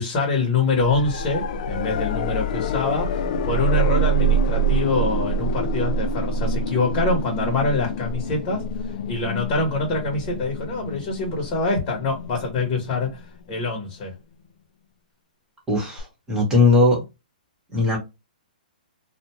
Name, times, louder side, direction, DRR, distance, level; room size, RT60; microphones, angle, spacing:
voice 1, 0.0-8.7 9.1-13.2 13.5-14.1, left 3 dB, 35° left, 1.0 m, -25 dB
sound 1, 0.8-13.6 16.0-16.1, right 2 dB, 55° left, 0.4 m, -26 dB
voice 2, 15.7-17.0 17.7-18.0, left 3 dB, 10° right, 1.0 m, -19 dB
2.5 x 2.2 x 2.9 m
hypercardioid pair, 150°, 5 cm